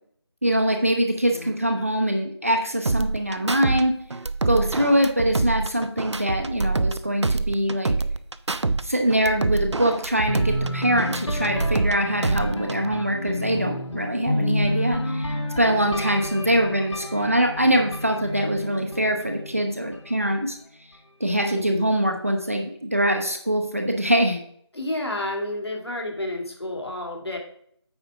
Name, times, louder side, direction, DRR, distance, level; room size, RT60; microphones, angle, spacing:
voice 1, 0.4-3.9 4.4-7.9 8.8-20.6 21.2-24.4, right 1 dB, 30° right, 3 dB, 0.8 m, -23 dB
sound 1, 2.9-3.8 4.1-7.0 7.2-8.8 9.1-11.9 12.2-12.9, right 3 dB, 80° right, 0.6 m, -25 dB
sound 2, 10.3-20.1, left 1 dB, 90° left, 1.4 m, -30 dB
voice 2, 21.5-21.9 24.7-27.4, left 1 dB, 65° left, 1 dB, 2.5 m, -31 dB
8.8 x 5.0 x 4.6 m, 0.64 s
figure-of-eight pair, 180°, 15 cm